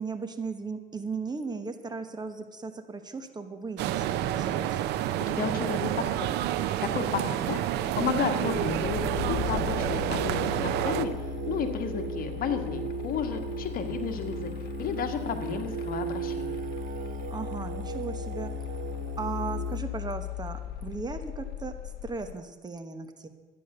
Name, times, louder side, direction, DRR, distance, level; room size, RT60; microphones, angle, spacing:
voice 1, 0.0-4.8 17.3-18.5 19.2-23.3, right 4 dB, 25° right, 9 dB, 1.1 m, -37 dB
sound 1, 3.8-11.1, right 12 dB, 85° right, 0.7 m, -29 dB
voice 2, 5.2-6.3 6.5-14.5 14.8-16.6, left 7 dB, 60° left, 6 dB, 1.6 m, -33 dB
Singing, 6.4-19.8, right 9 dB, 50° right, 0.8 m, -38 dB
sound 2, 7.6-22.3, left 14 dB, 75° left, 0.6 m, -37 dB
12.5 x 9.9 x 6.6 m, 1.3 s
cardioid pair, 110°, 17 cm